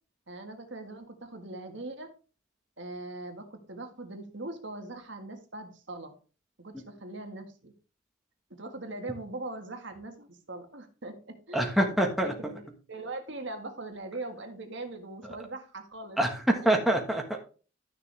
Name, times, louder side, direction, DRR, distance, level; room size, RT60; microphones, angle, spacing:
voice 1, 0.3-2.1 2.8-6.1 6.6-7.7 8.5-12.6 12.9-16.2, right 2 dB, 60° right, 5 dB, 1.7 m, -41 dB
voice 2, 11.5-12.3 15.2-15.3 16.2-17.4, right 1 dB, ahead, 0 dB, 1.5 m, -25 dB
12.5 x 6.6 x 3.4 m, 0.36 s
head